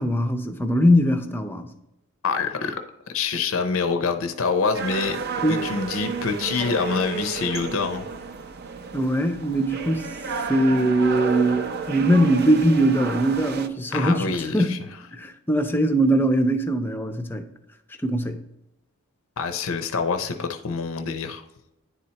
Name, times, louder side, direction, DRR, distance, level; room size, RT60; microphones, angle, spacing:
voice 1, 0.0-1.7 5.4-5.6 8.9-10.1 10.5-14.8 15.1-17.5 18.0-18.4, right 1 dB, 10° left, 0.5 m, -21 dB
voice 2, 2.2-2.8 3.1-5.2 5.5-8.0 13.9-14.8 19.4-21.4, left 5 dB, 65° left, 0.5 m, -26 dB
sound 1, 4.7-13.7, right 5 dB, 45° right, 0.5 m, -32 dB
10.0 x 4.3 x 2.8 m
head